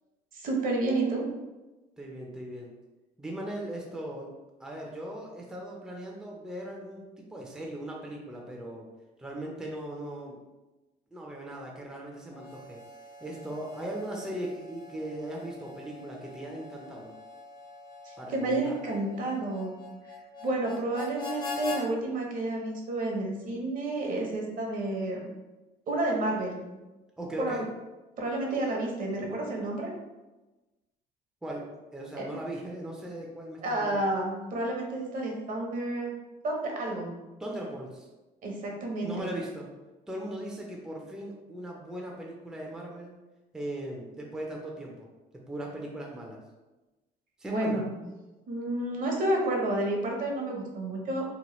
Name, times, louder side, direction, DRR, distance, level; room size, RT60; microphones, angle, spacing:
voice 1, 0.3-1.3 18.0-19.7 20.4-25.2 25.9-26.6 27.4-27.6 28.2-29.9 32.1-32.3 33.6-36.1 36.4-37.1 38.4-39.3 47.5-47.9 48.5-51.2, right 2 dB, 55° right, 0 dB, 0.8 m, -30 dB
voice 2, 2.0-2.7 3.2-4.3 4.6-8.9 9.2-10.4 11.1-12.8 13.2-17.1 18.2-18.8 27.2-27.7 31.4-34.0 37.4-38.1 39.0-39.7 40.1-43.2 43.5-45.1 45.5-46.4 47.4-47.8, right 1 dB, 5° right, -2 dB, 0.5 m, -38 dB
Harmonica, 12.3-21.8, left 4 dB, 55° left, 0.9 m, -43 dB
2.9 x 2.1 x 3.0 m, 1.1 s
cardioid pair, 110°, 17 cm